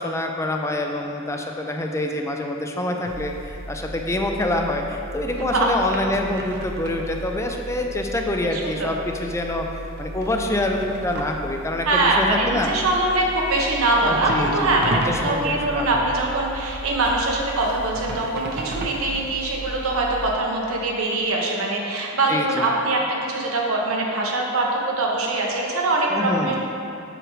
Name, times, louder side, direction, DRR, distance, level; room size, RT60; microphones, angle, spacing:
voice 1, 0.0-9.7 10.0-12.7 14.1-16.1 22.3-22.7 26.1-26.5, left 1 dB, 15° left, 2 dB, 0.4 m, -26 dB
sound 1, 3.0-20.3, right 2 dB, 50° right, 0.6 m, -35 dB
voice 2, 5.4-5.7 8.5-8.9 11.9-26.5, right 2 dB, 85° right, -1 dB, 1.1 m, -23 dB
7.8 x 6.2 x 3.1 m, 2.6 s
head